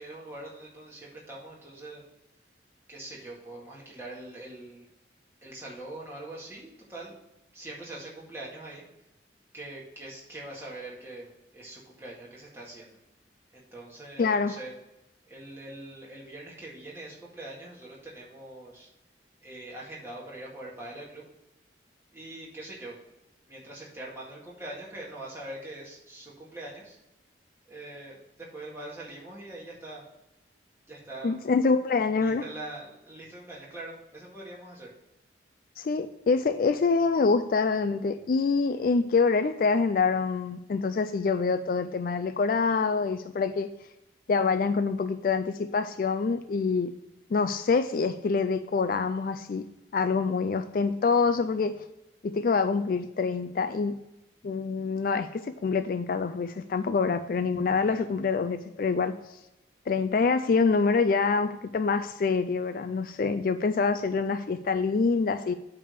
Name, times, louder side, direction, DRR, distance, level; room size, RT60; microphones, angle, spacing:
voice 1, 0.0-2.0 2.9-4.9 5.4-7.2 7.5-8.8 9.5-13.0 13.5-14.7 15.3-18.9 19.4-21.2 22.1-23.0 23.5-27.0 27.7-30.0 30.9-31.4 32.1-34.9 57.8-58.1, right 1 dB, 15° right, -5 dB, 1.9 m, -43 dB
voice 2, 14.2-14.6 31.2-32.4 35.8-43.7 44.3-46.9 47.3-49.7 49.9-51.8 52.2-54.0 54.4-59.2 59.9-65.5, left 4 dB, 50° left, 9 dB, 0.3 m, -26 dB
8.6 x 3.5 x 6.5 m, 0.93 s
head